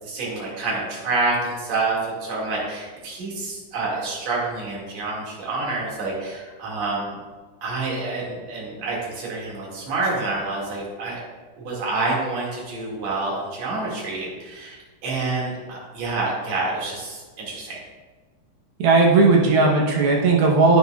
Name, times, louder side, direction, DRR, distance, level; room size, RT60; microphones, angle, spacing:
voice 1, 0.0-7.2 7.6-11.2 11.6-17.8, right 3 dB, 45° right, -4 dB, 2.8 m, -28 dB
voice 2, 18.8-20.8, right 3 dB, 70° right, -1 dB, 2.6 m, -16 dB
10.0 x 9.3 x 2.4 m, 1.4 s
omnidirectional pair, 5.1 m